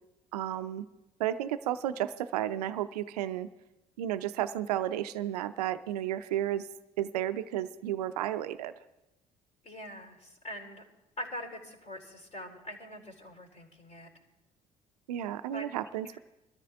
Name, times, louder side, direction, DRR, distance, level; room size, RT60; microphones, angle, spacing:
voice 1, 0.3-0.9 1.2-3.5 4.0-6.7 7.0-8.7 15.1-16.2, right 12 dB, 85° right, 13 dB, 0.5 m, -32 dB
voice 2, 9.6-10.8 11.2-14.1 15.5-15.7, equal, 40° left, 0 dB, 3.6 m, -43 dB
21.5 x 13.5 x 3.5 m, 0.94 s
hypercardioid pair, 50°, 20 cm